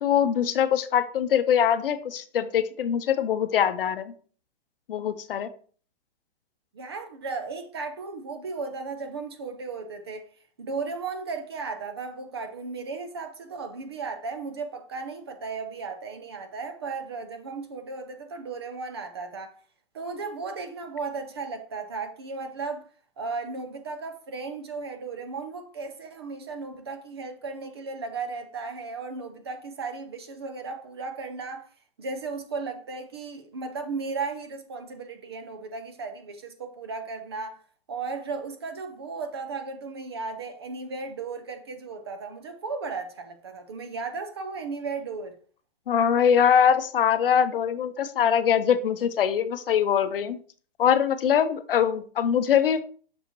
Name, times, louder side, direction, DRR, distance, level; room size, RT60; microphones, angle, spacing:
voice 1, 0.0-4.1 4.9-5.5 45.9-50.4 50.8-52.8, left 8 dB, 60° left, 0.7 m, -23 dB
voice 2, 6.7-10.2 10.6-19.5 19.9-22.9 23.2-31.7 32.0-37.6 37.9-45.3, right 4 dB, 25° right, 0.5 m, -35 dB
6.4 x 4.9 x 3.0 m
hypercardioid pair, 175°, 31 cm